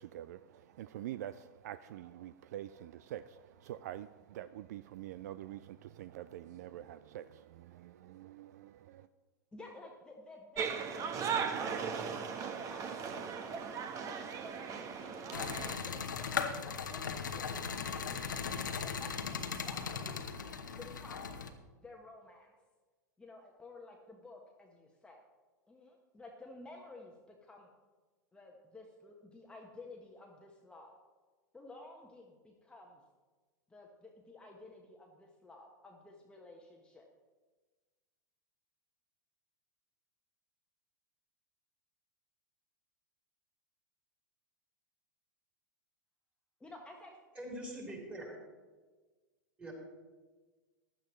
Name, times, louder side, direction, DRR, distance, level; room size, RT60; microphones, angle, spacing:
voice 1, 0.0-9.1, right 12 dB, 55° right, 14 dB, 0.4 m, -46 dB
voice 2, 9.5-11.9 12.3-13.0 13.3-13.5 13.8-20.3 20.8-21.3 21.8-22.5 23.2-25.2 25.7-27.7 28.3-31.0 31.5-33.0 33.7-37.0 46.6-47.2 47.9-48.0, left 2 dB, 10° left, 0 dB, 1.2 m, -54 dB
sound 1, 10.6-15.7, right 6 dB, 30° right, 1.1 m, -37 dB
sound 2, 15.3-21.5, left 6 dB, 75° left, 1.0 m, -38 dB
voice 3, 47.4-48.4 49.6-49.7, right 1 dB, 15° right, -2 dB, 3.9 m, -43 dB
15.5 x 11.5 x 3.1 m, 1.4 s
figure-of-eight pair, 95°, 10 cm